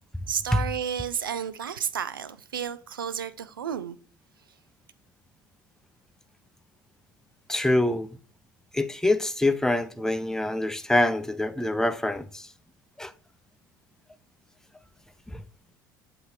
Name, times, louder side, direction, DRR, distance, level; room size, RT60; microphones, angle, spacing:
voice 1, 0.3-4.0, right 8 dB, 85° right, 0.4 m, -32 dB
voice 2, 7.5-8.1 8.7-12.5 13.0-13.1 15.3-15.4, left 1 dB, 5° left, 0.6 m, -25 dB
7.8 x 2.9 x 4.9 m
hypercardioid pair, 65°, 11 cm